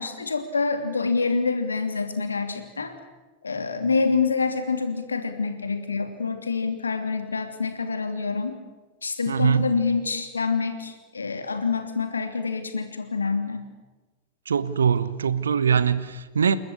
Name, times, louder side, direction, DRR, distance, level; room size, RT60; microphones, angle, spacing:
voice 1, 0.0-2.9 3.4-8.6 9.0-13.6, left 4 dB, 75° left, 7 dB, 2.8 m, -26 dB
voice 2, 9.3-9.7 14.5-16.6, right 7 dB, 70° right, 16 dB, 1.2 m, -22 dB
29.0 x 13.5 x 9.7 m, 1.2 s
figure-of-eight pair, 90°, 0 cm